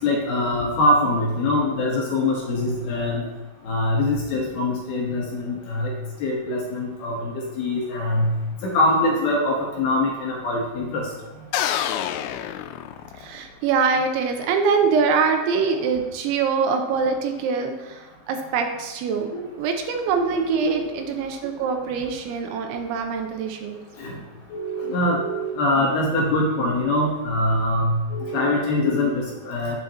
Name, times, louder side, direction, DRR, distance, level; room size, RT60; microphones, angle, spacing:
voice 1, 0.0-3.3 3.6-5.9 6.2-8.3 8.6-11.1 19.3-19.4 20.3-20.7 24.0-24.2 24.5-29.8, left 1 dB, 70° left, -2 dB, 2.6 m, -23 dB
sound 1, 11.5-13.5, left 10 dB, 90° left, 3.1 m, -27 dB
voice 2, 13.1-23.8, right 5 dB, 85° right, 4 dB, 2.9 m, -24 dB
10.5 x 7.7 x 2.9 m, 1.1 s
omnidirectional pair, 5.5 m